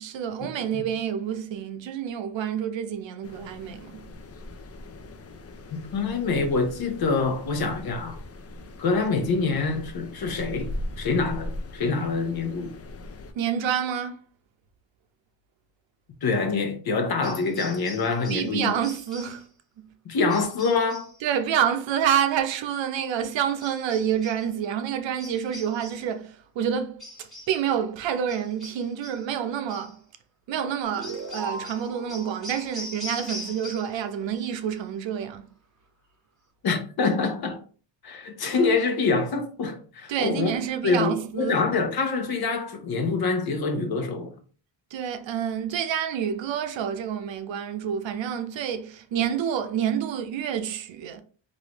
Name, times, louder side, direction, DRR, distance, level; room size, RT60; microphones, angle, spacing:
voice 1, 0.0-4.1 13.3-14.2 18.3-19.4 21.2-30.0 30.5-35.5 40.1-41.6 44.9-51.2, right 9 dB, 80° right, 0.6 m, -28 dB
sound 1, 3.2-13.3, left 1 dB, 35° left, 0.4 m, -40 dB
voice 2, 5.9-8.2 8.8-10.7 11.0-12.7 16.2-18.7 20.0-21.1 36.6-37.6 38.0-40.5 40.8-44.3, left 4 dB, 55° left, 0.8 m, -25 dB
sound 2, 17.2-18.5 18.8-19.4 20.3-21.2 23.6-24.5 25.2-26.1 27.0-27.6 28.3-29.3 29.7-29.9 31.0-34.0 34.3-34.8, left 1 dB, ahead, 1.2 m, -42 dB
sound 3, 30.8-34.1, right 3 dB, 40° right, 0.8 m, -39 dB
3.2 x 2.6 x 2.9 m
wide cardioid pair, 135°, 45 cm